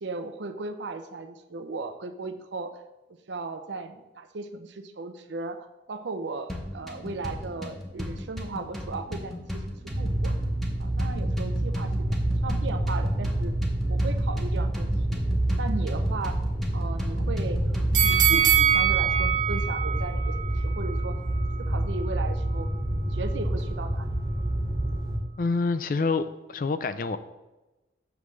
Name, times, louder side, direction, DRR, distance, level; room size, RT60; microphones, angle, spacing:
voice 1, 0.0-2.7 3.3-10.3 10.8-11.9 12.4-13.5 13.9-15.2 15.6-16.4 16.7-17.6 18.0-20.3 20.6-21.2 21.6-22.7 23.0-24.2, right 3 dB, 75° right, 0.6 m, -36 dB
sound 1, 6.5-18.5, left 1 dB, ahead, 0.7 m, -37 dB
sound 2, 9.9-25.2, right 1 dB, 20° right, 1.0 m, -27 dB
sound 3, 17.9-21.0 21.5-21.6, right 10 dB, 40° right, 0.7 m, -23 dB
voice 2, 25.4-27.2, left 4 dB, 50° left, 0.4 m, -27 dB
7.0 x 3.2 x 6.1 m
head